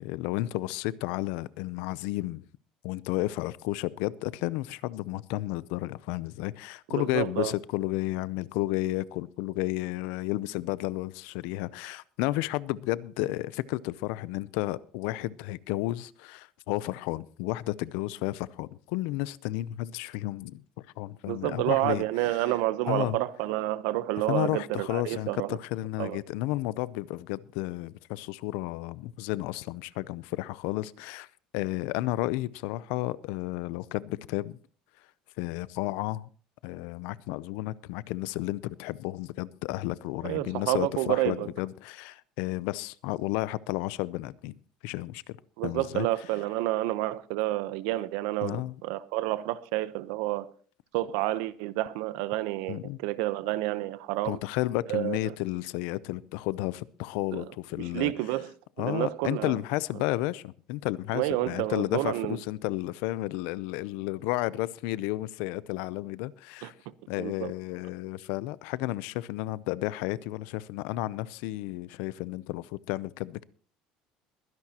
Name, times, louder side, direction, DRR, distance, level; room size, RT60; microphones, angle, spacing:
voice 1, 0.0-2.5 2.8-20.6 21.0-22.0 22.9-23.2 24.3-31.3 31.5-34.6 35.4-36.3 36.6-44.6 44.8-45.4 45.6-46.1 48.4-48.8 52.7-53.0 54.2-58.1 58.8-66.7 67.1-73.4, left 17 dB, 75° left, 0.6 m, -32 dB
voice 2, 6.9-7.5 21.3-25.6 26.0-26.2 40.2-41.5 45.6-50.5 50.9-54.4 54.9-55.3 57.3-57.5 57.8-58.5 58.8-59.6 61.1-62.4 66.6-66.7 67.2-67.5, right 16 dB, 80° right, 0.8 m, -29 dB
22.0 x 10.5 x 2.9 m
cardioid pair, 170°, 2 cm